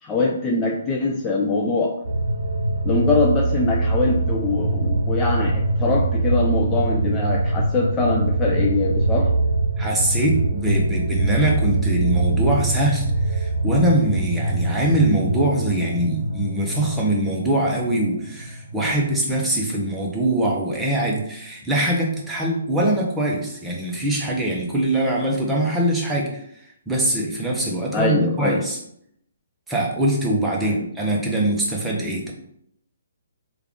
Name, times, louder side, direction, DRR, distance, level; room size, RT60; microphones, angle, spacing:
voice 1, 0.0-2.0 2.8-9.3 27.9-28.6 30.6-30.8, left 3 dB, 15° left, -1 dB, 0.4 m, -23 dB
sound 1, 2.0-19.6 19.9-20.0, right 2 dB, 75° right, 0.7 m, -23 dB
voice 2, 9.8-28.8 29.7-32.3, right 1 dB, 5° right, -3 dB, 0.7 m, -23 dB
3.3 x 2.4 x 3.6 m, 0.72 s
hypercardioid pair, 145°, 0 cm